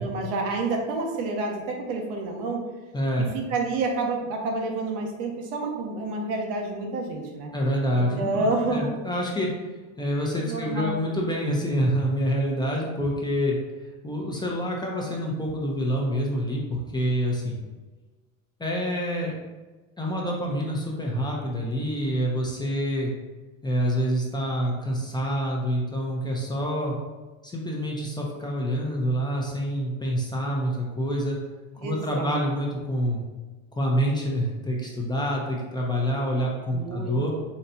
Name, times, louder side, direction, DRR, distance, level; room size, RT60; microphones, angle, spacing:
voice 1, 0.0-2.6 3.2-7.5 7.9-8.9 10.4-11.0 31.8-32.5 36.7-37.4, right 3 dB, 65° right, 1 dB, 1.0 m, -29 dB
voice 2, 2.9-3.3 7.5-9.5 10.0-13.6 14.0-17.6 18.6-19.3 20.0-23.1 23.6-27.0 27.4-31.4 31.8-33.2 33.8-37.3, equal, 10° left, -3 dB, 0.7 m, -27 dB
4.0 x 3.1 x 2.8 m, 1.2 s
supercardioid pair, 100°, 40 cm